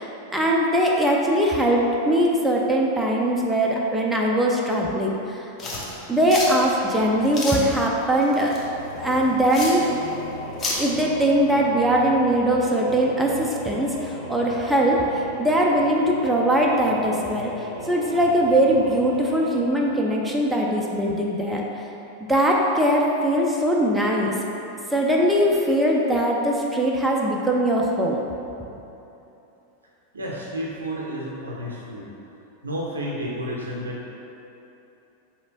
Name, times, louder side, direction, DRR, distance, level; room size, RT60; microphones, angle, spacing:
voice 1, 0.0-5.5 6.1-8.5 9.0-9.9 10.8-17.5 17.8-21.6 22.3-24.3 24.9-28.2, right 1 dB, 5° right, -2 dB, 0.3 m, -21 dB
sound 1, 5.6-10.8, left 2 dB, 25° left, 0.7 m, -32 dB
Singing / Musical instrument, 8.4-21.0, equal, 80° left, 1.0 m, -37 dB
voice 2, 30.1-32.1 32.6-34.1, equal, 75° right, -3 dB, 0.6 m, -31 dB
4.2 x 2.9 x 2.7 m, 2.9 s
figure-of-eight pair, 90°, 0 cm